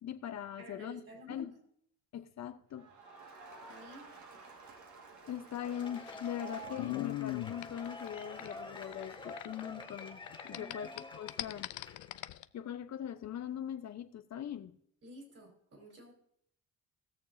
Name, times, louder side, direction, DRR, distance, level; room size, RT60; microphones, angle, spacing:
voice 1, 0.0-1.0 1.3-1.5 2.1-2.9 5.3-11.7 12.5-14.8, left 10 dB, 60° left, 8 dB, 0.9 m, -41 dB
voice 2, 0.6-1.6 3.6-4.1 10.5-11.0 15.0-16.1, equal, 50° right, 0 dB, 4.8 m, -51 dB
Crowd, 2.7-9.8, right 5 dB, 70° right, 1.9 m, -53 dB
Cheering / Applause / Crowd, 5.5-12.3, left 2 dB, 15° left, 1.7 m, -49 dB
sound 1, 5.7-10.0 10.3-12.4, left 17 dB, 85° left, 0.5 m, -40 dB
20.0 x 6.7 x 2.7 m, 0.68 s
cardioid pair, 90°, 30 cm